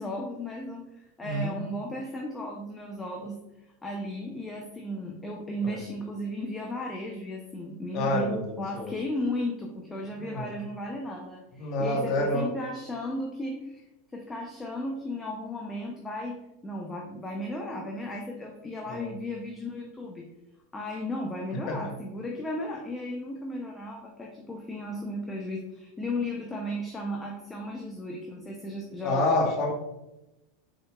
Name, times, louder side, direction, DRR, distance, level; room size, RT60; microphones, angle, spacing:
voice 1, 0.0-3.4 3.8-13.8 14.1-20.3 20.7-29.5, left 1 dB, 15° left, 0 dB, 0.5 m, -35 dB
voice 2, 1.2-1.6 5.6-5.8 7.9-9.0 10.2-10.5 11.5-12.5 18.9-19.1 21.7-22.0 29.0-29.7, left 1 dB, 45° left, 3 dB, 0.8 m, -28 dB
3.9 x 3.6 x 2.3 m, 0.94 s
supercardioid pair, 120°, 0 cm